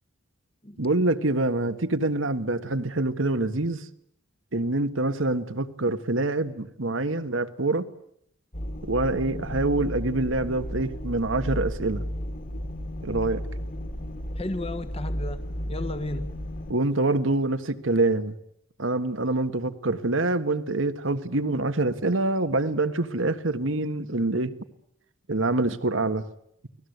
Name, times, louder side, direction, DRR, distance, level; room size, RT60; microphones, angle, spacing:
voice 1, 0.8-3.9 4.5-7.9 8.8-12.0 13.0-13.4 16.7-18.4 18.8-24.6 25.3-26.2, right 2 dB, 85° right, 11 dB, 1.6 m, -25 dB
sound 1, 8.5-16.7, equal, 45° left, 2.9 m, -33 dB
voice 2, 14.4-16.4, left 1 dB, 30° left, 10 dB, 1.3 m, -34 dB
30.0 x 19.5 x 8.1 m, 0.72 s
head